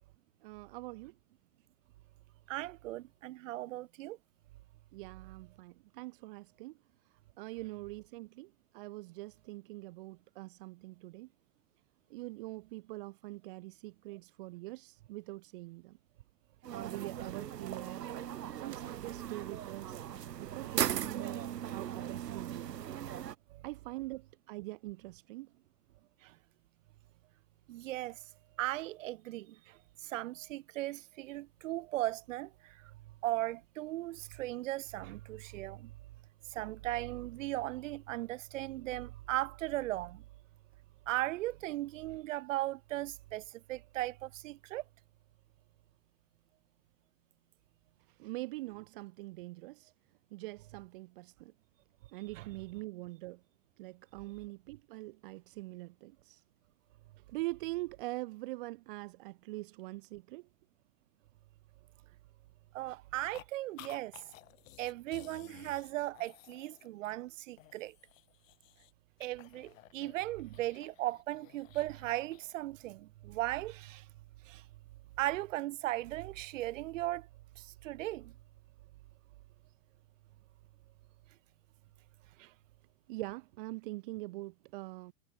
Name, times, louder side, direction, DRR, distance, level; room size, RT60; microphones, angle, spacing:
voice 1, 0.4-1.1 4.9-6.8 7.4-11.3 12.1-16.0 16.7-18.0 18.6-20.0 20.4-21.4 21.7-22.7 23.6-25.5 48.1-49.9 50.3-51.5 52.1-53.4 53.8-56.4 57.3-60.5 83.1-85.1, right 21 dB, 35° right, 0.8 m, -43 dB
voice 2, 2.5-4.2 26.2-26.3 27.7-28.2 28.6-29.8 30.0-32.7 33.2-35.9 36.5-40.2 41.1-44.8 52.4-52.5 62.7-64.1 64.8-67.9 69.2-74.0 74.5-74.6 75.2-77.3 77.6-78.3 82.4-82.5, right 16 dB, 50° right, 3.1 m, -37 dB
sound 1, 16.6-23.4, right 10 dB, 85° right, 3.0 m, -38 dB
sound 2, 63.3-63.5 63.8-67.3 67.6-68.9 69.2-72.6, left 16 dB, 55° left, 4.3 m, -56 dB
hypercardioid pair, 155°, 47 cm